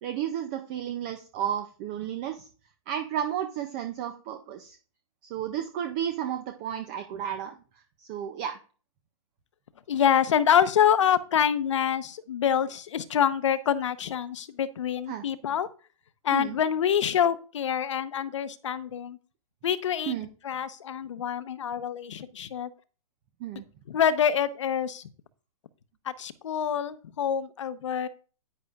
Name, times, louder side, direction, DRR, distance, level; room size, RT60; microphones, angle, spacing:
voice 1, 0.0-2.5 2.9-4.8 5.2-7.5 8.0-8.6 15.1-15.2 16.3-16.6 20.1-20.3 23.4-23.6, right 10 dB, 15° right, 7 dB, 0.3 m, -32 dB
voice 2, 9.9-15.7 16.2-19.2 19.6-20.1 20.4-22.7 23.9-25.1 26.0-28.1, left 8 dB, 55° left, 14 dB, 0.8 m, -26 dB
9.8 x 9.8 x 2.3 m, 0.38 s
hypercardioid pair, 165°, 18 cm